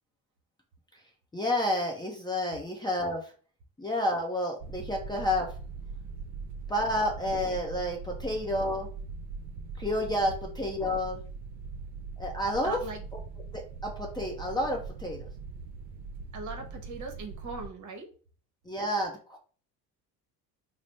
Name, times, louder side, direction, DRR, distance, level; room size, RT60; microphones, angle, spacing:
voice 1, 1.3-3.3 3.8-5.5 6.7-8.9 9.8-11.2 12.2-12.8 13.5-15.3 18.7-19.4, left 1 dB, 10° left, 0 dB, 0.5 m, -30 dB
sound 1, 4.6-17.7, right 4 dB, 75° right, 0.6 m, -41 dB
voice 2, 12.6-13.0 16.3-18.1, right 3 dB, 50° right, 4 dB, 0.9 m, -39 dB
3.3 x 2.0 x 3.9 m, 0.41 s
cardioid pair, 125°, 38 cm